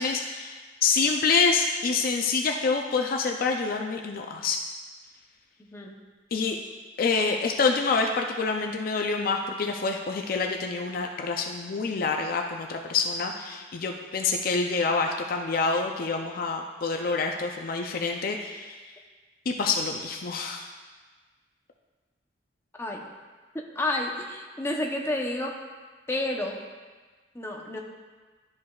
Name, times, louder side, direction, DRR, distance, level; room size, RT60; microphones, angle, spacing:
voice 1, 0.0-4.6 6.3-6.6 7.0-18.9 19.5-20.7, left 4 dB, 50° left, 3 dB, 0.4 m, -27 dB
voice 2, 23.8-25.6 26.1-26.6 27.3-27.8, left 1 dB, 15° left, 0 dB, 0.7 m, -30 dB
11.5 x 5.3 x 2.3 m, 1.4 s
head